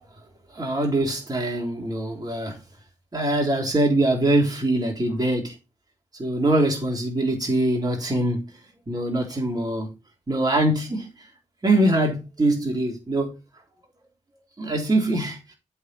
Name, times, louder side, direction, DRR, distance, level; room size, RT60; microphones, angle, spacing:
voice 1, 0.5-2.6 3.1-5.5 6.2-8.4 8.9-9.9 10.3-11.1 11.6-13.3 14.6-15.5, right 1 dB, 30° right, 3.5 m, -23 dB
8.1 x 4.9 x 6.1 m
cardioid pair, 60°, 13 cm